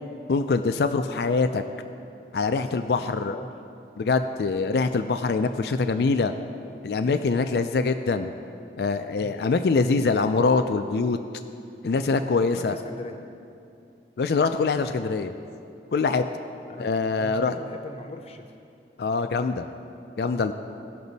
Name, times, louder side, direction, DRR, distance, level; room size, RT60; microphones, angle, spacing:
voice 1, 0.3-1.6 2.3-3.4 4.0-6.3 6.8-8.3 8.8-11.2 11.8-12.7 14.2-15.3 15.9-16.2 16.8-17.6 19.0-19.7 20.2-20.5, left 4 dB, 65° left, 8 dB, 0.4 m, -24 dB
voice 2, 2.6-3.5 7.4-7.7 9.2-9.3 12.4-13.1 16.7-16.9 17.1-18.6, left 1 dB, 35° left, 5 dB, 0.7 m, -41 dB
17.5 x 6.0 x 4.0 m, 2.6 s
head